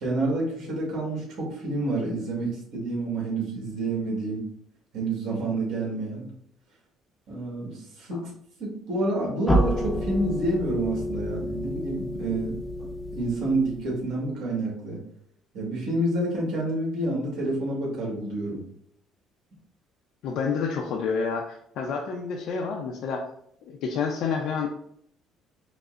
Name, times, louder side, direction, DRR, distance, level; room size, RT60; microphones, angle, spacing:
voice 1, 0.0-4.5 4.9-6.2 7.3-8.3 8.6-12.9 13.1-15.0 15.5-18.6, right 2 dB, 65° right, -3 dB, 1.5 m, -28 dB
sound 1, 9.5-14.3, equal, 10° left, 0.6 m, -29 dB
voice 2, 20.2-23.2 23.7-24.7, left 5 dB, 70° left, 0 dB, 0.5 m, -29 dB
4.9 x 2.0 x 2.4 m, 0.68 s
cardioid pair, 130°, 0 cm